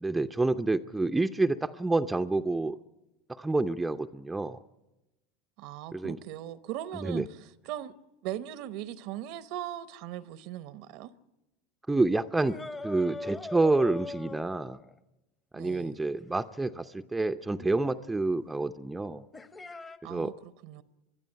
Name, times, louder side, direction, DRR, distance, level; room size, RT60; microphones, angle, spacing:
voice 1, 0.0-2.8 3.3-4.6 5.9-6.2 7.0-7.2 11.9-12.6 12.8-14.8 15.5-19.3 20.1-20.3, right 2 dB, 10° right, 0.6 m, -28 dB
voice 2, 5.6-7.9 8.2-11.1 15.5-16.0 20.0-20.8, right 12 dB, 65° right, 0.8 m, -39 dB
sound 1, 12.4-15.0 17.6-17.7 19.3-20.0, left 3 dB, 20° left, 1.1 m, -40 dB
23.0 x 12.5 x 10.0 m
hypercardioid pair, 95°, 0 cm